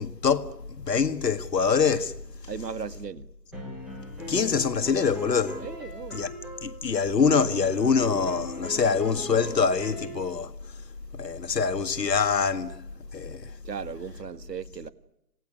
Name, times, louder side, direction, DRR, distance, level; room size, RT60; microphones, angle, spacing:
voice 1, 0.0-2.1 4.3-5.6 6.1-6.3 6.6-10.5 11.1-12.8 13.1-13.6, left 5 dB, 80° left, 2.0 m, -25 dB
voice 2, 2.5-3.3 5.6-6.3 13.6-14.9, right 6 dB, 75° right, 2.0 m, -37 dB
sound 1, 3.5-6.8 7.4-10.1, left 1 dB, ahead, 1.0 m, -39 dB
26.0 x 18.5 x 9.9 m
hypercardioid pair, 165°, 49 cm